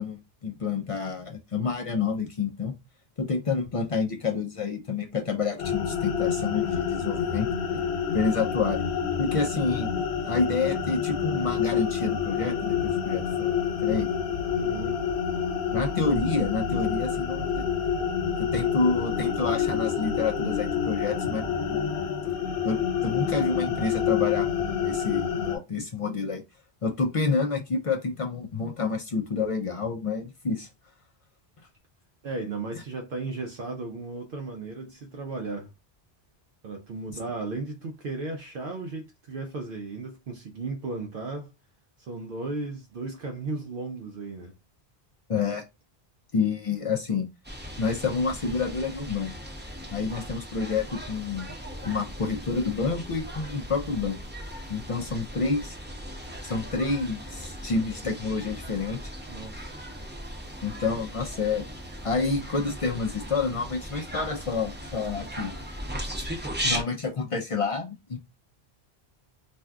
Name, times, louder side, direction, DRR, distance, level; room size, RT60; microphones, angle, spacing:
voice 1, 0.0-2.8 3.2-7.5 8.1-8.8 9.2-9.9 10.2-14.1 15.7-17.7 18.4-21.9 22.6-26.4 26.8-30.7 45.3-45.6 46.3-47.3 47.8-49.4 49.9-51.6 51.8-54.2 54.7-55.8 56.4-59.0 60.6-61.7 62.0-65.5 66.6-68.2, left 4 dB, 50° left, 0.4 m, -28 dB
sound 1, 5.6-25.6, left 7 dB, 80° left, 0.9 m, -28 dB
voice 2, 14.6-15.0 32.2-35.7 36.6-41.5 42.0-44.6 59.3-59.7, right 3 dB, 65° right, 0.7 m, -35 dB
sound 2, 47.4-66.8, equal, 10° right, 0.6 m, -37 dB
2.6 x 2.2 x 3.4 m
omnidirectional pair, 1.1 m